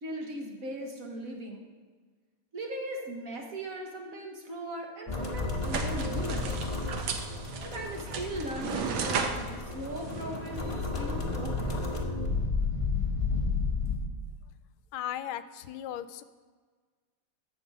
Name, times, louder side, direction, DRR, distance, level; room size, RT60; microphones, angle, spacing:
voice 1, 0.0-1.7 2.5-6.6 7.6-11.8, right 1 dB, 45° right, 1 dB, 1.6 m, -39 dB
sound 1, 5.1-14.0, left 3 dB, 20° left, 0.9 m, -32 dB
sound 2, 5.6-10.9, right 5 dB, 75° right, 1.7 m, -36 dB
voice 2, 14.9-16.2, left 11 dB, 85° left, 12 dB, 1.4 m, -36 dB
12.0 x 5.4 x 7.4 m, 1.5 s
omnidirectional pair, 2.2 m